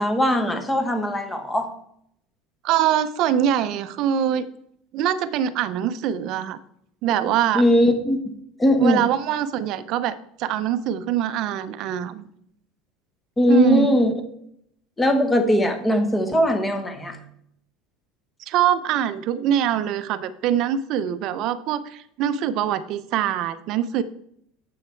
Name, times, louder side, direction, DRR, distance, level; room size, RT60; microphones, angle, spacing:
voice 1, 0.0-1.7 7.5-8.3 8.6-9.0 13.4-14.1 15.0-17.2, equal, 10° left, 7 dB, 1.1 m, -20 dB
voice 2, 2.6-4.5 4.9-6.6 7.0-7.7 8.8-10.1 10.4-12.3 13.5-13.9 18.5-24.0, right 10 dB, 45° right, 13 dB, 0.7 m, -23 dB
8.8 x 7.3 x 4.5 m, 0.71 s
cardioid pair, 160°, 0 cm